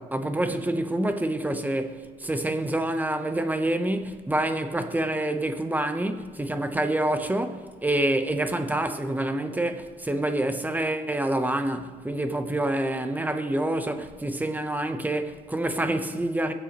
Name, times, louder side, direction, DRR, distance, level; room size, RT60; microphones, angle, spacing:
voice 1, 0.0-16.5, right 1 dB, 10° right, 0.8 m, -27 dB
20.5 x 8.1 x 3.0 m
cardioid pair, 110°, 17 cm